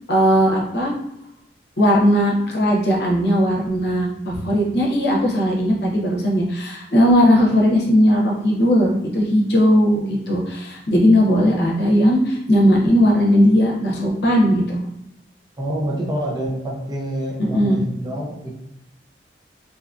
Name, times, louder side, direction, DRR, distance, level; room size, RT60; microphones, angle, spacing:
voice 1, 0.1-0.9 1.8-14.8 17.5-17.8, equal, 65° left, -2 dB, 0.7 m, -17 dB
voice 2, 15.6-18.5, right 1 dB, 20° right, -3 dB, 0.5 m, -27 dB
2.7 x 2.5 x 2.3 m, 0.84 s
head